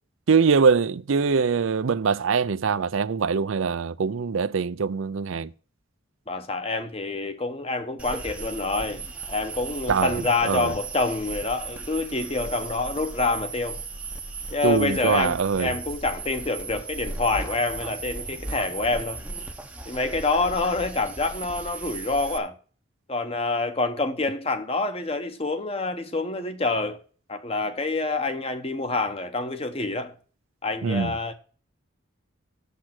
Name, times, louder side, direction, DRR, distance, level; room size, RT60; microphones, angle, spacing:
voice 1, 0.3-5.5 9.9-10.1 10.4-10.7 14.6-15.7 30.8-31.1, right 5 dB, 75° right, 0.5 m, -23 dB
voice 2, 6.3-13.8 14.5-19.2 19.9-22.5 23.1-27.0 27.3-30.1 30.6-31.3, left 3 dB, 30° left, 1.0 m, -27 dB
sound 1, 8.0-22.4, right 4 dB, 5° right, 0.7 m, -36 dB
8.3 x 7.5 x 6.0 m
head